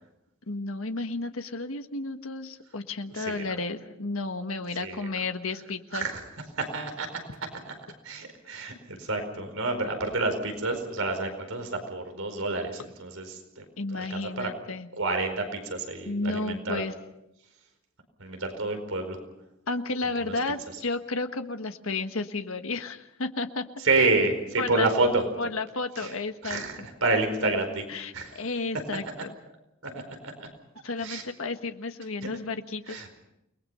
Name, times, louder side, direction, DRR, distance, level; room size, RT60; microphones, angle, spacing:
voice 1, 0.5-6.1 13.8-14.9 16.0-16.9 19.7-23.6 24.6-24.9 25.4-26.9 27.9-29.3 30.8-33.1, left 3 dB, 75° left, 7 dB, 1.5 m, -32 dB
voice 2, 6.6-7.1 8.0-13.6 13.9-14.5 15.0-16.8 18.2-19.2 20.3-20.4 23.8-25.2 26.0-26.1 26.4-28.4 29.8-30.5 31.0-31.2 32.9-33.1, right 3 dB, 75° right, 6 dB, 4.7 m, -29 dB
29.0 x 20.0 x 5.7 m, 0.84 s
head